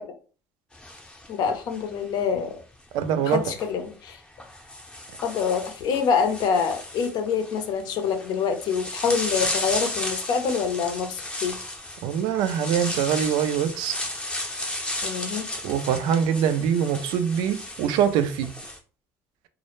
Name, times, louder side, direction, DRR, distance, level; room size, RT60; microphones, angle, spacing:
sound 1, 0.7-2.2 3.5-3.6 4.4-18.8, left 1 dB, 10° left, 0.6 m, -34 dB
voice 1, 1.3-2.6 3.2-4.2 5.2-11.6 15.0-15.5, left 6 dB, 65° left, 0.5 m, -26 dB
voice 2, 2.9-3.4 12.0-14.0 15.6-18.5, right 8 dB, 75° right, 0.3 m, -24 dB
2.0 x 2.0 x 3.0 m
supercardioid pair, 95°, 8 cm